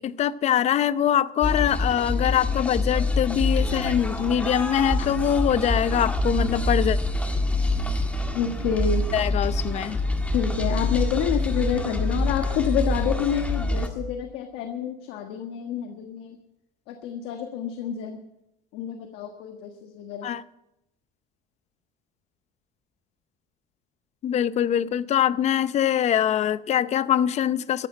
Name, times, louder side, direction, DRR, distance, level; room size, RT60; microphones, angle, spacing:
voice 1, 0.0-7.0 9.1-10.0 20.2-20.4 24.2-27.9, left 10 dB, 45° left, 0.7 m, -23 dB
sound 1, 1.4-13.9, left 3 dB, 10° left, 1.8 m, -27 dB
sound 2, 3.3-13.8, right 7 dB, 65° right, 5.0 m, -33 dB
voice 2, 8.3-9.0 10.3-16.4 16.9-18.2 18.7-20.3, left 9 dB, 85° left, 1.5 m, -28 dB
14.5 x 11.0 x 7.7 m
cardioid pair, 130°, 16 cm